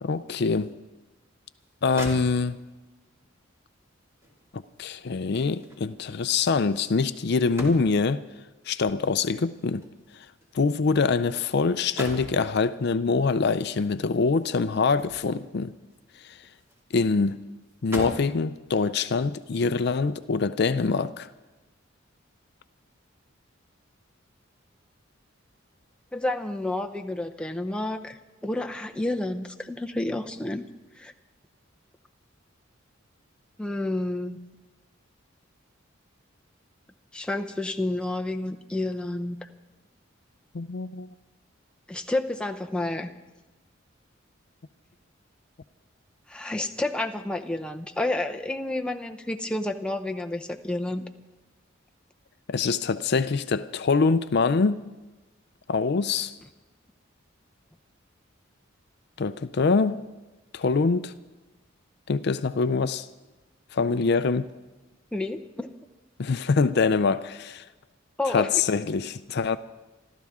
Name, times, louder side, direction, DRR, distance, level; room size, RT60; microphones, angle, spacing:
voice 1, 0.0-0.7 1.8-2.6 4.5-8.2 8.7-9.8 10.5-15.7 16.2-16.4 16.9-17.4 17.8-21.3 40.5-41.1 52.5-54.8 55.7-56.4 59.2-60.0 60.5-61.1 62.1-63.1 63.7-64.5 66.2-67.6 68.3-69.6, left 4 dB, 55° left, 0.4 m, -24 dB
sound 1, 1.6-1.7 2.0-2.8 4.2-8.2 9.3-11.4 11.7-12.4 13.9-15.5 15.9-16.9 17.2-17.3 17.7-18.4 19.1-19.2, equal, 15° right, 2.3 m, -41 dB
voice 2, 26.1-30.6 31.0-31.1 33.6-34.4 37.1-39.5 41.9-43.1 46.3-51.1 65.1-65.7 68.2-68.5, left 2 dB, 5° left, 0.6 m, -30 dB
27.5 x 13.0 x 3.6 m
head